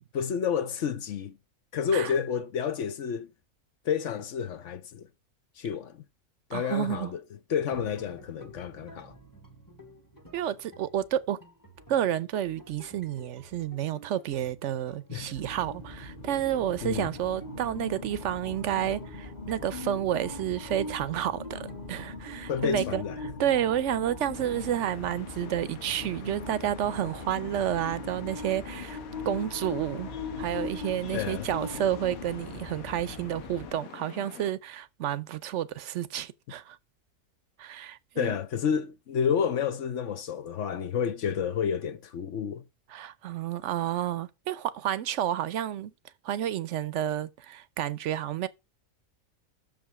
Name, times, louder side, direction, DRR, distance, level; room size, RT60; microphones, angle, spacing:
voice 1, 0.1-1.3 1.7-3.3 3.8-5.1 5.6-6.0 6.5-7.2 7.5-9.1 15.1-15.3 16.8-17.1 22.5-23.3 31.1-31.5 38.2-42.6, left 7 dB, 65° left, 1.0 m, -30 dB
voice 2, 6.5-7.1 10.3-11.4 11.9-23.0 23.4-29.0 29.2-30.1 30.4-36.8 37.6-38.3 42.9-45.9 46.2-48.5, right 11 dB, 65° right, 0.9 m, -30 dB
sound 1, 7.7-22.5, right 1 dB, 15° left, 1.2 m, -51 dB
sound 2, 15.3-33.7, left 3 dB, 30° left, 1.3 m, -40 dB
sound 3, 24.3-34.5, left 9 dB, 85° left, 1.2 m, -47 dB
6.6 x 5.1 x 5.9 m
omnidirectional pair, 1.5 m